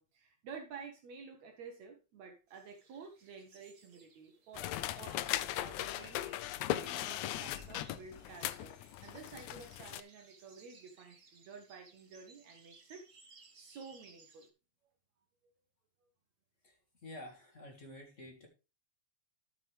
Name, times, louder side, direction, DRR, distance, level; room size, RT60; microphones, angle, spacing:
voice 1, 0.0-4.7 5.0-6.3 6.7-13.1 13.5-14.5, right 5 dB, 65° right, 4 dB, 2.2 m, -51 dB
sound 1, 2.5-14.5, right 4 dB, 85° right, 0.7 m, -62 dB
sound 2, 4.5-10.0, left 14 dB, 80° left, 1.8 m, -38 dB
voice 2, 17.0-18.5, left 1 dB, 30° left, 1 dB, 1.8 m, -49 dB
12.5 x 6.3 x 3.4 m, 0.30 s
omnidirectional pair, 3.6 m